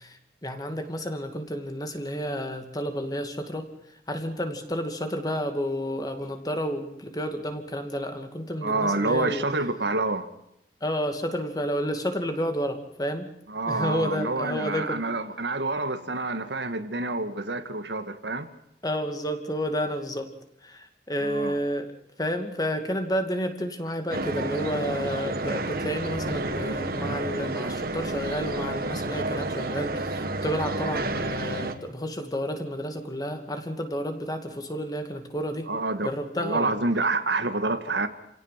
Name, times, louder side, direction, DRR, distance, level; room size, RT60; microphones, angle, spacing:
voice 1, 0.0-3.7 4.1-9.4 10.8-13.3 13.7-15.0 18.8-20.3 20.6-21.9 22.2-35.7 36.0-36.7, equal, 20° left, 6 dB, 2.5 m, -30 dB
voice 2, 8.6-10.3 13.5-18.5 21.2-21.5 30.7-31.0 35.7-36.1 36.4-38.1, right 2 dB, 70° right, 8 dB, 2.0 m, -28 dB
sound 1, 24.1-31.8, right 2 dB, 55° right, 1.8 m, -30 dB
28.5 x 17.5 x 5.9 m, 0.78 s
head